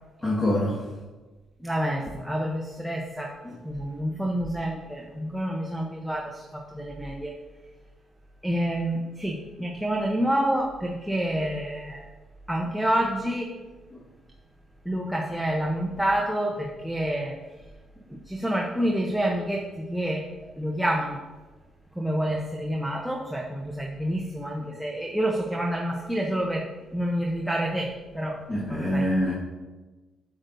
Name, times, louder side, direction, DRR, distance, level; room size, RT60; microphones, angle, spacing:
voice 1, 0.2-0.8 3.4-3.6 13.9-14.0 24.6-24.7 28.5-29.3, left 1 dB, 20° left, -5 dB, 1.6 m, -25 dB
voice 2, 1.6-3.3 3.6-7.3 8.4-12.0 12.5-13.5 14.9-17.4 18.3-20.3 20.6-21.2 22.0-26.7 26.9-28.4 28.7-29.0, right 1 dB, ahead, -1 dB, 0.8 m, -28 dB
8.5 x 7.8 x 2.7 m, 1.2 s
cardioid pair, 90°, 0 cm